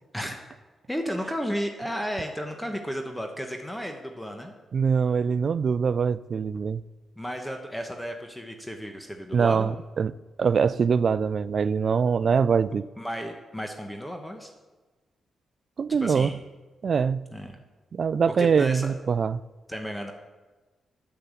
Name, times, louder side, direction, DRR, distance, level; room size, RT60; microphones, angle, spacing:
voice 1, 0.9-4.5 7.2-9.7 13.0-14.5 16.0-16.4 17.3-17.6 18.3-18.9 19.7-20.1, equal, 5° left, 1.1 m, -33 dB
voice 2, 4.7-6.8 9.3-10.1 10.4-12.9 15.8-16.3 16.8-17.2 17.9-19.4, right 6 dB, 55° right, 0.3 m, -23 dB
8.6 x 6.9 x 8.2 m
cardioid pair, 70°, 0 cm